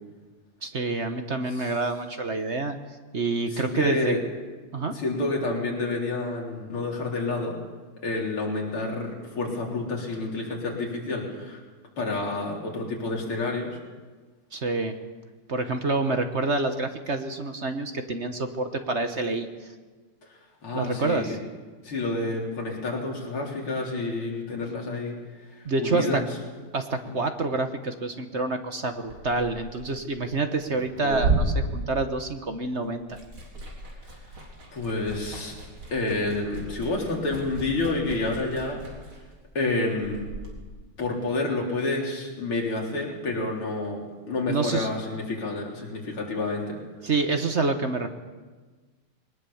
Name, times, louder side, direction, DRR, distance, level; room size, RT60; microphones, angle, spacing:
voice 1, 0.6-2.8 3.1-4.1 4.7-4.9 14.5-15.0 15.5-19.5 20.7-21.4 25.6-26.2 26.7-33.2 44.5-44.9 47.0-48.1, right 3 dB, 40° right, 7 dB, 1.1 m, -27 dB
voice 2, 3.5-4.2 4.9-7.6 8.0-11.6 12.0-13.8 20.3-21.4 21.8-26.3 27.1-27.2 34.7-35.6 35.9-38.9 39.5-40.3 41.0-46.8, left 2 dB, 75° left, -1 dB, 4.5 m, -29 dB
Liquid, 28.9-32.6 32.9-40.5, right 2 dB, 70° right, 4.7 m, -33 dB
21.5 x 19.5 x 7.2 m, 1.4 s
omnidirectional pair, 2.4 m